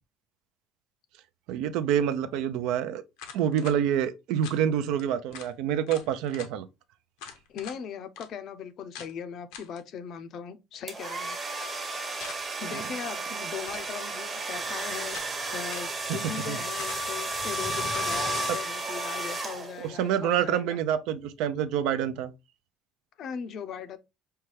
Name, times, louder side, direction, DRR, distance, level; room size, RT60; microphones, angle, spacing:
voice 1, 1.5-3.0 3.3-6.7 12.7-12.8 16.1-16.2 16.5-16.6 19.8-22.3, right 9 dB, 70° right, 0.5 m, -27 dB
sound 1, 3.2-3.8 4.4-4.6 5.0-5.1 5.3-5.5 5.9-6.5 7.2-7.8 8.2-8.3 8.9-9.1 9.5-9.8 12.2-12.7 13.5-14.0 14.6-15.4 15.7-15.9 16.8-17.2 17.9-18.3, left 7 dB, 85° left, 0.8 m, -44 dB
voice 2, 7.5-11.4 12.6-15.2 15.5-20.8 23.2-24.0, left 7 dB, 50° left, 0.5 m, -39 dB
sound 2, 10.9-20.0, right 2 dB, 20° right, 0.9 m, -33 dB
5.5 x 2.2 x 3.1 m
cardioid pair, 140°, 0 cm